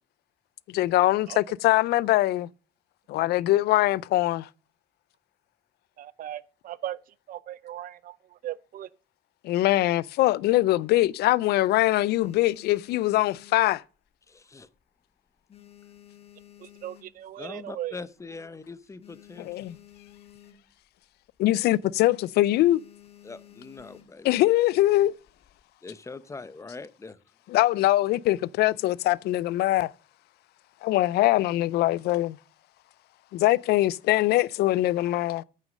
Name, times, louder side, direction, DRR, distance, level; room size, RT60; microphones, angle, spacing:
voice 1, 0.7-2.5 3.1-4.5 9.4-13.8 19.4-19.8 21.4-22.8 24.2-25.1 27.5-29.9 30.8-32.4 33.3-35.4, left 16 dB, 75° left, 0.4 m, -22 dB
voice 2, 6.0-7.0 7.3-8.9 16.6-18.0, right 12 dB, 55° right, 0.5 m, -37 dB
sound 1, 10.7-11.4 11.8-14.3 14.6-15.0 15.3-17.5 18.0-18.1 18.3-18.4 18.7-20.9 21.2-21.5 21.8-22.0 22.5-24.3 25.0-25.6, left 11 dB, 35° left, 1.2 m, -53 dB
voice 3, 14.3-14.7 17.4-19.7 23.2-24.3 25.8-27.2, left 3 dB, 15° left, 0.7 m, -42 dB
9.1 x 6.5 x 6.3 m
cardioid pair, 110°, 17 cm